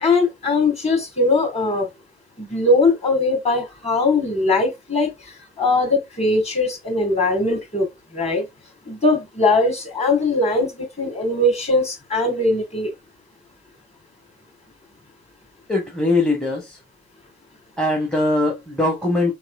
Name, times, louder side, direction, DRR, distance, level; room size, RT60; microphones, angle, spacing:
voice 1, 0.0-1.9 2.4-7.9 8.1-8.4 8.9-12.9, left 2 dB, 20° left, 1.4 m, -20 dB
voice 2, 15.7-16.8 17.8-19.3, left 2 dB, ahead, 0.7 m, -21 dB
3.1 x 2.7 x 2.3 m
figure-of-eight pair, 55°, 31 cm